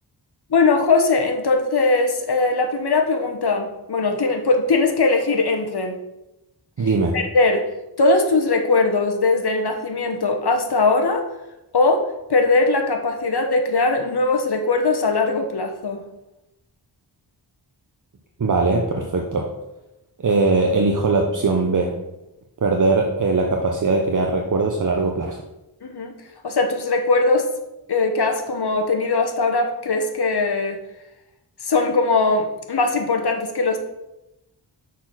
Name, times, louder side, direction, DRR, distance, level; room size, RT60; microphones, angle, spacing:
voice 1, 0.5-6.0 6.8-6.9 7.1-7.7 8.0-11.3 11.7-16.0 25.8-26.1 26.4-27.5 27.9-30.8 31.6-33.8, left 3 dB, 65° left, 4 dB, 1.1 m, -20 dB
voice 2, 6.8-7.2 18.4-19.5 20.2-21.9 22.6-25.4, right 3 dB, 45° right, 1 dB, 0.8 m, -20 dB
6.3 x 4.2 x 6.1 m, 0.94 s
wide cardioid pair, 65°, 42 cm